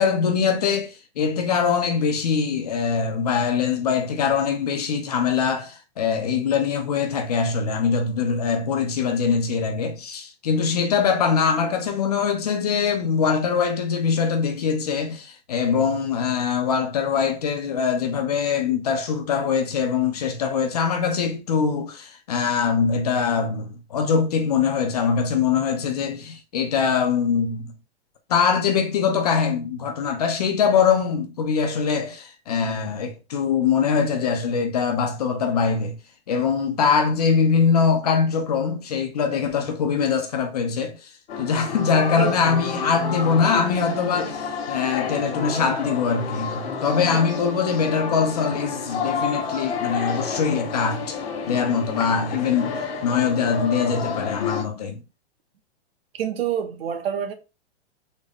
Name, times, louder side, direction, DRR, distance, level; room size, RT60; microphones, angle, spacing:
voice 1, 0.0-27.7 28.3-36.0 36.3-41.1 41.4-51.2 51.5-55.0, left 6 dB, 40° left, 0.5 m, -23 dB
sound 1, 41.3-54.6, left 5 dB, 65° left, 1.3 m, -30 dB
voice 2, 56.1-57.3, right 9 dB, 60° right, 0.8 m, -27 dB
3.9 x 2.1 x 3.4 m
hypercardioid pair, 175°, 33 cm